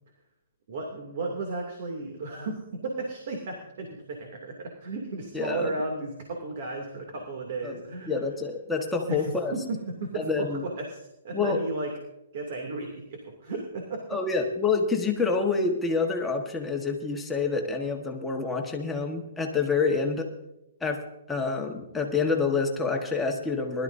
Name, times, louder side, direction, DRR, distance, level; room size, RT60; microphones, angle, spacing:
voice 1, 0.7-8.3 9.1-11.0 11.2-11.9 12.3-14.2, right 2 dB, 50° right, 2 dB, 2.6 m, -34 dB
voice 2, 5.3-5.7 7.6-7.8 8.1-9.5 10.2-10.6 11.3-11.6 14.1-20.3 20.8-21.0 21.3-23.8, left 4 dB, 5° left, 1 dB, 1.4 m, -27 dB
21.0 x 12.5 x 2.7 m, 0.89 s
hypercardioid pair, 160°, 0 cm